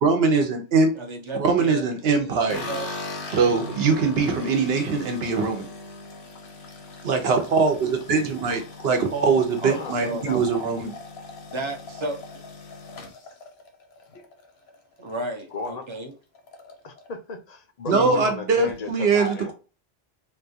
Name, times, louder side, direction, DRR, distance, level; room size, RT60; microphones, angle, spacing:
voice 1, 0.0-0.9 1.3-2.7 3.3-5.7 7.0-10.9 17.9-19.5, right 4 dB, 70° right, 1.0 m, -22 dB
voice 2, 0.9-1.8 2.2-2.9 9.6-10.2 11.5-12.2 15.0-16.1 17.9-18.3, right 2 dB, 35° right, 0.6 m, -33 dB
sound 1, 2.5-14.8 15.1-15.7 16.0-16.1 16.4-17.1, left 3 dB, 75° left, 1.0 m, -39 dB
voice 3, 9.7-10.4 15.5-15.9 16.8-19.5, left 3 dB, 50° left, 0.6 m, -34 dB
3.7 x 2.3 x 2.6 m
omnidirectional pair, 1.1 m